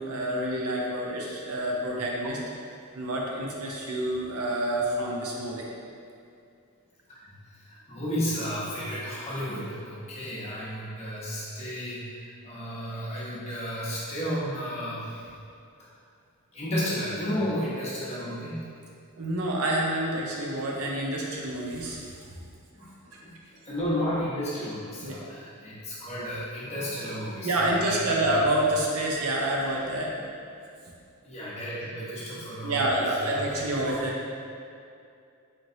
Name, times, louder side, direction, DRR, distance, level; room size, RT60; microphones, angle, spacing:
voice 1, 0.0-2.4 2.9-5.7 19.2-22.0 25.0-25.2 27.4-30.1 32.6-34.3, right 1 dB, 70° right, -2 dB, 0.6 m, -28 dB
voice 2, 7.2-15.3 16.5-18.7 22.7-28.4 31.2-34.0, equal, 30° left, -8 dB, 0.9 m, -33 dB
4.3 x 3.1 x 2.6 m, 2.4 s
head